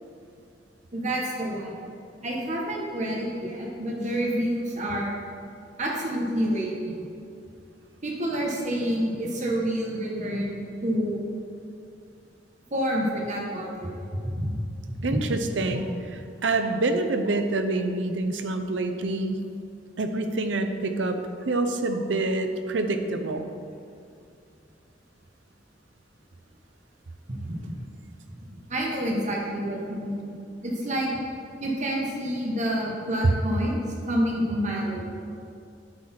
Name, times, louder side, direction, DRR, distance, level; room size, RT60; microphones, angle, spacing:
voice 1, 0.9-1.8 2.2-5.1 5.8-6.9 8.0-11.2 12.7-14.6 15.0-15.1 15.7-15.8 21.9-22.0 27.5-27.9 28.7-30.3 30.6-31.2 31.6-33.8 34.1-35.2, equal, 40° right, -2 dB, 1.3 m, -28 dB
voice 2, 15.0-15.9 16.4-19.4 20.0-21.2 21.5-23.5, right 2 dB, 80° right, 7 dB, 0.7 m, -26 dB
9.8 x 6.6 x 4.3 m, 2.4 s
head